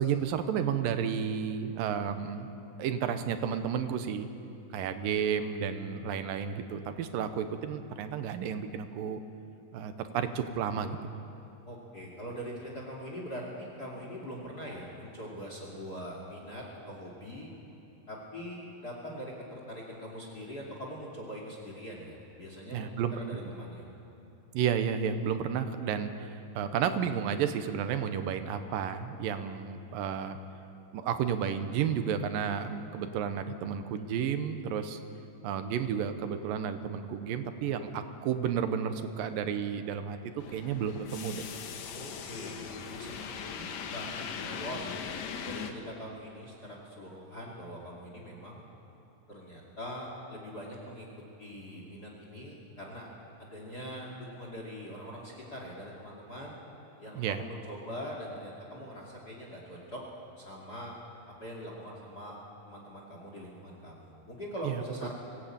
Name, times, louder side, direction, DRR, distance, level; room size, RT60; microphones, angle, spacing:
voice 1, 0.0-2.5 2.8-4.3 4.7-9.2 9.7-11.0 22.7-23.1 24.5-30.4 30.9-35.0 35.4-41.4 57.1-57.4 64.6-64.8, right 8 dB, 85° right, 9 dB, 2.7 m, -32 dB
voice 2, 11.7-17.5 18.1-23.9 41.9-44.8 45.4-48.6 49.3-51.1 51.4-53.1 53.4-56.6 57.0-60.0 60.4-60.9 61.4-62.4 62.6-65.1, equal, 30° left, -1 dB, 2.7 m, -42 dB
sound 1, 40.4-45.7, left 6 dB, 65° left, 2.2 m, -40 dB
23.0 x 16.5 x 8.7 m, 3.0 s
omnidirectional pair, 4.0 m